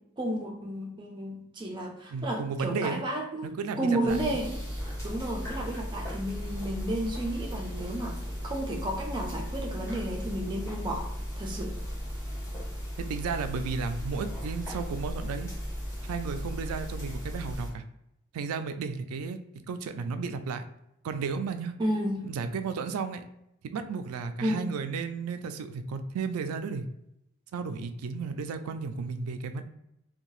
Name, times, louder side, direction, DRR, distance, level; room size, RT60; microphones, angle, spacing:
voice 1, 0.2-4.5 5.0-11.1 11.4-11.7 21.8-22.3 24.4-24.7, right 1 dB, 20° right, 0 dB, 0.4 m, -32 dB
voice 2, 2.1-3.0 3.4-4.4 13.0-15.5 16.0-17.8 18.3-19.4 19.7-20.6 21.0-21.7 22.2-23.2 23.7-26.9 27.5-29.6, right 5 dB, 90° right, 9 dB, 0.3 m, -33 dB
sound 1, 4.1-17.7, equal, 15° left, 0.8 m, -36 dB
2.7 x 2.2 x 3.0 m, 0.80 s
head